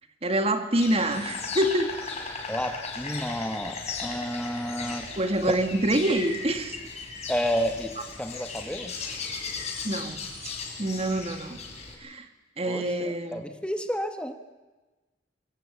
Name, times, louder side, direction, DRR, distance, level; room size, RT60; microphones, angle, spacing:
voice 1, 0.2-1.9 5.2-6.8 9.8-10.2 10.8-11.6 12.0-12.3 12.6-13.4, right 1 dB, 35° right, 7 dB, 1.8 m, -26 dB
Insect, 0.7-11.9, left 4 dB, 40° left, 4.4 m, -37 dB
voice 2, 2.5-5.1 7.3-7.9 8.2-8.9 12.6-14.4, equal, 5° left, 7 dB, 1.2 m, -31 dB
24.0 x 16.0 x 8.2 m, 1.2 s
head